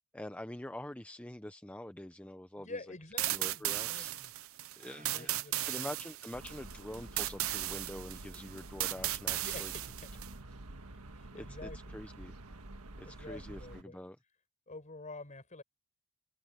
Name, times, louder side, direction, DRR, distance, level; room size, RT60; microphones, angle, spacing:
voice 1, 0.1-2.8 3.3-4.1 4.8-9.7 11.4-12.3 13.0-14.2, left 1 dB, 5° left, 0.7 m, -45 dB
voice 2, 2.6-4.3 5.0-5.9 9.3-9.9 11.1-12.0 13.0-14.0 14.7-15.6, left 2 dB, 35° left, 5.1 m, -48 dB
sound 1, 3.2-10.3, right 15 dB, 65° right, 0.7 m, -36 dB
Toilet flush, 4.8-10.0, right 5 dB, 40° right, 3.7 m, -63 dB
sound 2, 6.3-13.8, right 2 dB, 85° right, 1.6 m, -49 dB
open air
head